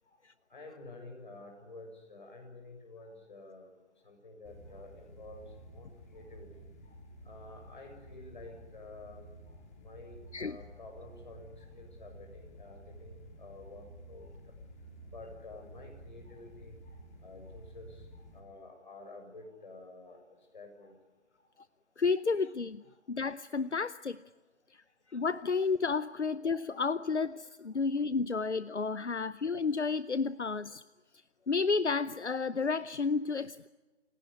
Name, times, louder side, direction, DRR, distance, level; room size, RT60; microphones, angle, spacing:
voice 1, 0.5-3.7 4.0-7.0 7.2-14.4 15.1-21.0 21.4-21.5 26.1-26.2 27.7-27.8 30.3-30.4, left 2 dB, 40° left, 3 dB, 7.3 m, -51 dB
sound 1, 4.5-18.4, right 1 dB, 15° left, 2.1 m, -52 dB
voice 2, 22.0-22.8 23.1-24.2 25.1-30.8 31.5-33.7, left 4 dB, 75° left, 16 dB, 0.8 m, -31 dB
29.0 x 17.5 x 9.9 m, 1.2 s
figure-of-eight pair, 155°, 35 cm